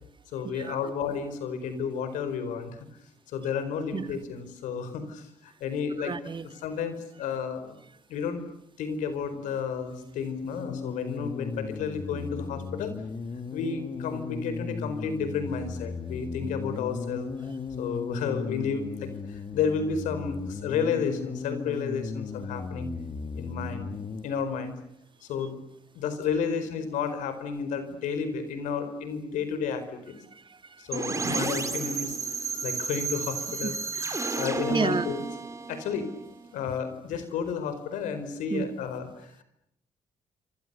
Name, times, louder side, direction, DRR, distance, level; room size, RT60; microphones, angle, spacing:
voice 1, 0.3-2.8 3.3-6.1 6.4-7.8 8.1-8.4 8.8-12.9 13.5-17.3 17.8-22.9 23.3-24.0 24.2-24.8 25.2-25.6 25.9-30.2 30.8-32.2 32.6-35.2 35.7-36.1 36.5-39.4, left 6 dB, 90° left, 11 dB, 4.6 m, -32 dB
voice 2, 6.0-6.5 31.2-31.4 33.6-34.1 34.7-35.1 38.5-38.6, right 5 dB, 40° right, 10 dB, 1.9 m, -30 dB
sound 1, 9.9-24.2, left 5 dB, 45° left, 2.3 m, -36 dB
sound 2, 30.9-36.7, right 4 dB, 25° right, 3.4 m, -32 dB
28.5 x 26.0 x 6.9 m, 0.76 s
supercardioid pair, 65°, 13 cm